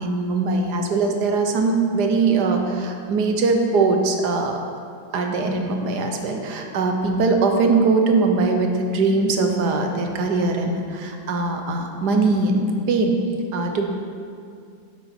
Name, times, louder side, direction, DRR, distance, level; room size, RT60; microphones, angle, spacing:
voice 1, 0.0-4.6 5.1-13.2 13.5-13.8, right 3 dB, 60° right, 4 dB, 1.4 m, -21 dB
11.0 x 8.2 x 4.4 m, 2.3 s
omnidirectional pair, 2.2 m